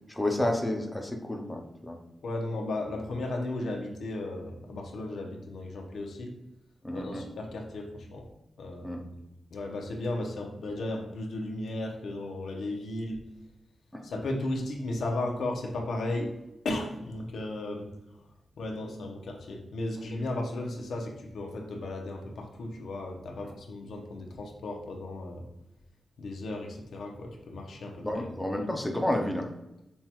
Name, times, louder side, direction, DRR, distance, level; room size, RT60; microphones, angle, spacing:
voice 1, 0.1-2.0 6.8-7.2 8.8-9.0 13.9-14.0 28.0-29.5, left 1 dB, 10° left, 2 dB, 0.4 m, -30 dB
voice 2, 2.2-6.4 6.9-8.3 8.6-9.0 9.5-13.2 14.0-16.3 16.6-17.9 18.6-25.4 26.2-28.4, left 2 dB, 85° left, 1 dB, 0.7 m, -35 dB
5.5 x 2.3 x 2.9 m, 0.93 s
wide cardioid pair, 155°, 0 cm